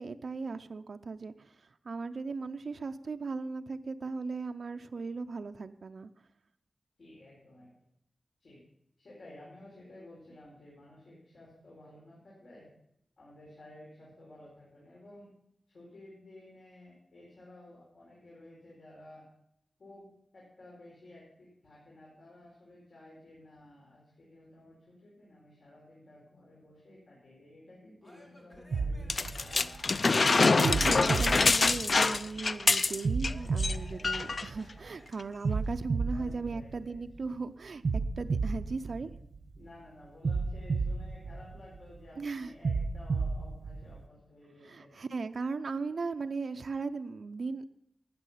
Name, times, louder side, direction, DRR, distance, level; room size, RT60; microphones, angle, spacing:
voice 1, 0.0-6.1 30.4-37.8 38.2-39.1 42.2-42.5 44.6-47.7, right 4 dB, 65° right, 8 dB, 0.5 m, -37 dB
voice 2, 7.0-7.7 8.4-8.6 9.0-12.7 13.2-15.3 15.7-19.3 19.8-29.6 33.6-34.3 36.1-37.0 39.6-45.0, left 1 dB, 70° left, -5 dB, 4.6 m, -54 dB
Male speech man speaking / Yell / Laughter, 28.0-30.2 30.8-32.6 33.2-35.1, equal, 20° left, 2.9 m, -56 dB
sound 1, 28.7-30.0 30.6-32.3 33.0-34.8 35.4-37.2 37.8-39.6 40.2-41.9 42.6-44.0, right 4 dB, 85° right, 1.0 m, -33 dB
sound 2, 29.1-33.3 33.6-33.8 34.0-34.5 35.2-35.3, left 3 dB, 50° left, 0.4 m, -25 dB
13.0 x 9.1 x 5.6 m, 0.75 s
wide cardioid pair, 115°, 0 cm